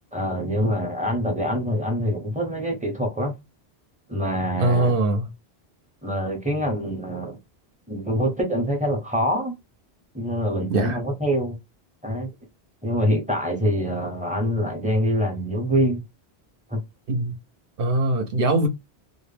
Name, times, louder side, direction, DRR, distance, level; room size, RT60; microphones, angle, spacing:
voice 1, 0.1-3.3 4.1-5.0 6.0-7.4 7.9-9.5 10.1-11.6 12.0-12.3 12.8-16.0 16.7-16.8, equal, 10° right, 0.7 m, -25 dB
voice 2, 4.6-5.3 10.7-11.0 17.1-17.3 17.8-18.7, right 2 dB, 60° right, 0.8 m, -21 dB
2.3 x 2.0 x 3.1 m
omnidirectional pair, 1.1 m